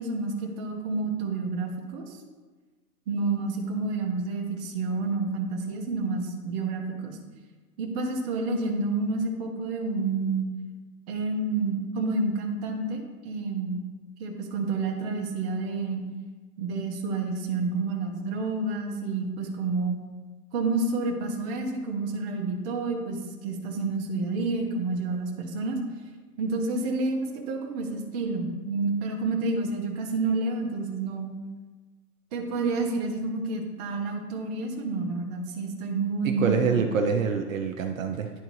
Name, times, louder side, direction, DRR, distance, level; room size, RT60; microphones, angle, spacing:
voice 1, 0.0-2.2 3.1-7.2 7.8-10.5 11.1-13.9 14.2-16.0 16.6-20.0 20.5-25.8 26.4-31.3 32.3-36.8, right 3 dB, 25° right, 0 dB, 0.8 m, -29 dB
voice 2, 36.2-38.3, right 5 dB, 55° right, 4 dB, 0.7 m, -26 dB
11.0 x 3.8 x 3.1 m, 1.3 s
hypercardioid pair, 155°, 49 cm